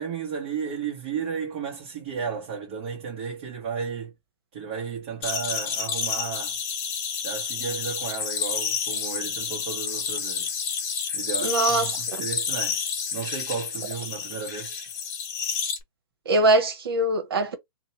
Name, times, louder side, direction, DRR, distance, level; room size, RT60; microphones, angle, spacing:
voice 1, 0.0-4.1 4.5-6.6 7.2-10.5 11.1-14.8, right 6 dB, 40° right, 1.1 m, -33 dB
sound 1, 5.2-15.8, left 6 dB, 25° left, 0.8 m, -30 dB
voice 2, 11.4-12.2 16.2-17.6, right 2 dB, 75° right, 1.1 m, -22 dB
2.7 x 2.2 x 4.1 m
hypercardioid pair, 155°, 13 cm